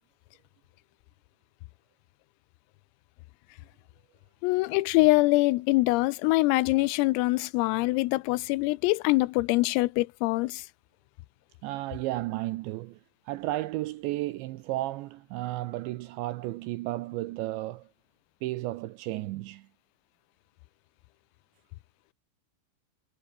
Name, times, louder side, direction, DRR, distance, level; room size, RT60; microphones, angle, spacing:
voice 1, 4.4-10.6, left 21 dB, 90° left, 3.4 m, -24 dB
voice 2, 11.6-13.0 13.3-17.9 18.4-19.7, right 17 dB, 85° right, 2.7 m, -33 dB
omnidirectional pair, 5.9 m